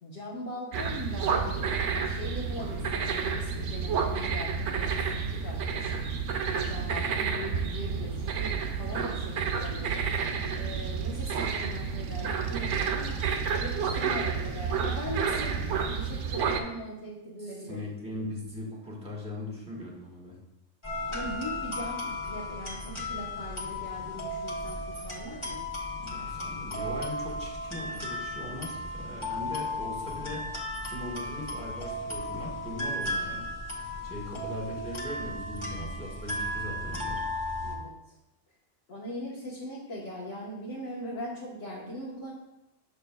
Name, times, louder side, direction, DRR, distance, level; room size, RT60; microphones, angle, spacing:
voice 1, 0.0-6.0 6.5-10.0 10.5-13.2 13.6-17.8 21.1-25.6 37.6-38.1 38.9-42.3, equal, 70° left, -7 dB, 1.5 m, -40 dB
sound 1, 0.7-16.6, right 6 dB, 80° right, 1.0 m, -30 dB
voice 2, 17.4-20.4 26.0-37.3, left 1 dB, 5° right, -3 dB, 1.5 m, -40 dB
sound 2, 20.8-37.8, left 1 dB, 25° left, 1.1 m, -35 dB
6.8 x 6.7 x 2.3 m, 0.91 s
omnidirectional pair, 1.3 m